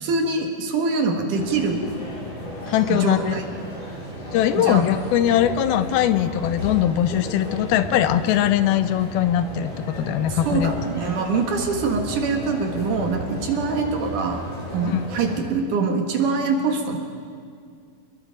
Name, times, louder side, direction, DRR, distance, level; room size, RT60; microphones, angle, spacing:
voice 1, 0.0-1.9 2.9-3.4 4.6-4.8 10.3-14.4 14.7-17.0, right 4 dB, 60° right, 3 dB, 3.1 m, -24 dB
sound 1, 1.3-15.4, equal, 55° left, 9.0 m, -34 dB
voice 2, 2.7-3.4 4.3-10.7 11.3-11.4 14.8-15.0, left 11 dB, 85° left, 12 dB, 2.6 m, -21 dB
27.5 x 21.5 x 5.0 m, 2.1 s
omnidirectional pair, 4.4 m